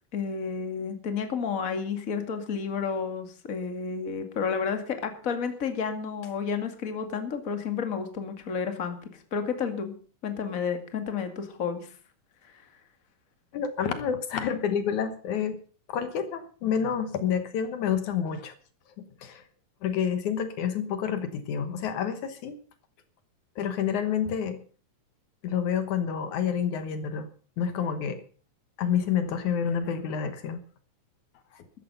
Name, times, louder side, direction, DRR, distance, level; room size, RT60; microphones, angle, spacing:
voice 1, 0.1-9.9 10.2-11.9, left 6 dB, 30° left, 7 dB, 2.2 m, -31 dB
voice 2, 13.5-15.6 15.9-18.5 19.0-19.4 19.8-22.6 23.6-24.6 25.4-27.3 27.6-28.2 28.8-30.6 31.5-31.6, left 7 dB, 70° left, 10 dB, 2.6 m, -29 dB
14.5 x 12.5 x 5.5 m, 0.41 s
omnidirectional pair, 3.6 m